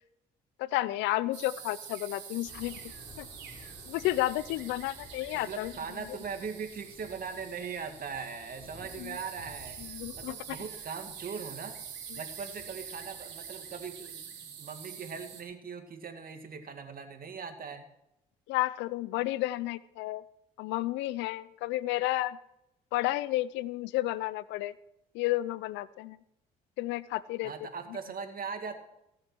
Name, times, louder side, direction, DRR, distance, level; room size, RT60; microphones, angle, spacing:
voice 1, 0.6-2.8 3.2-3.3 3.9-5.7 9.0-9.2 9.8-10.6 12.1-12.2 18.5-20.2 20.6-22.4 22.9-24.7 25.1-26.2 26.8-27.5, left 16 dB, 85° left, 19 dB, 0.5 m, -31 dB
sound 1, 1.3-15.4, right 8 dB, 80° right, 3.8 m, -46 dB
Thunder / Rain, 2.4-14.1, left 1 dB, 25° left, 3.8 m, -55 dB
voice 2, 5.3-11.8 12.1-14.2 14.6-17.9 27.4-28.7, right 5 dB, 55° right, 6 dB, 2.3 m, -40 dB
17.5 x 7.5 x 6.2 m, 0.85 s
supercardioid pair, 60°, 18 cm